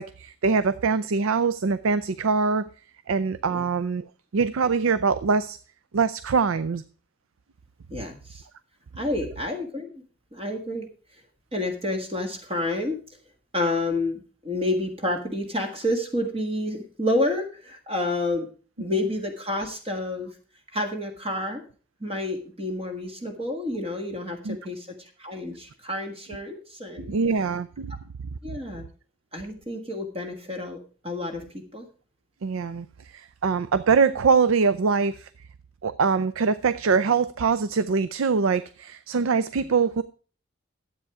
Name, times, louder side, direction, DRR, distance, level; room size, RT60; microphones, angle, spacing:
voice 1, 0.0-2.7 3.1-4.1 4.3-5.6 5.9-6.8 24.4-24.6 27.1-27.9 32.4-32.9 33.1-35.3 35.8-40.0, right 5 dB, 85° right, 14 dB, 0.5 m, -23 dB
voice 2, 7.9-8.4 9.0-9.9 10.3-10.9 11.5-13.0 13.5-18.5 18.8-20.3 20.7-21.6 22.0-27.1 28.4-28.8 29.3-31.8, left 1 dB, 30° right, 3 dB, 1.5 m, -29 dB
12.5 x 8.3 x 4.8 m, 0.40 s
head